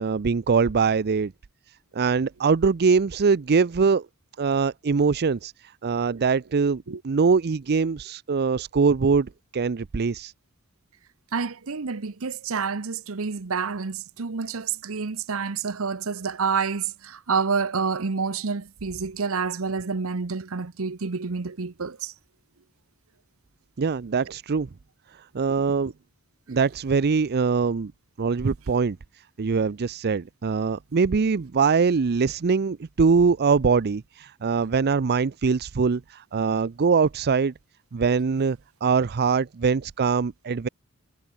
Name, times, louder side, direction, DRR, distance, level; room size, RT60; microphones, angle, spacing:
voice 1, 0.0-1.3 1.9-4.1 4.4-5.5 5.8-10.3 23.8-24.7 25.2-25.9 26.5-27.9 28.2-29.0 29.4-37.5 37.9-40.7, right 5 dB, 50° right, 0.5 m, -23 dB
voice 2, 11.3-22.1 25.5-25.6, right 5 dB, 70° right, 0.9 m, -28 dB
head